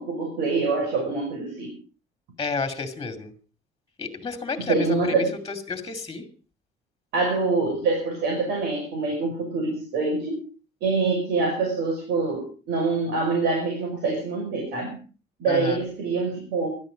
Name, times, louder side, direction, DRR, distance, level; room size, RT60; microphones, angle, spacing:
voice 1, 0.0-1.7 4.7-5.3 7.1-10.5 10.8-15.0 15.4-16.7, right 3 dB, 85° right, 2 dB, 5.6 m, -25 dB
voice 2, 2.4-3.3 4.0-6.3 15.5-15.8, left 4 dB, 20° left, 8 dB, 2.6 m, -31 dB
17.0 x 12.5 x 5.2 m, 0.37 s
cardioid pair, 110°, 17 cm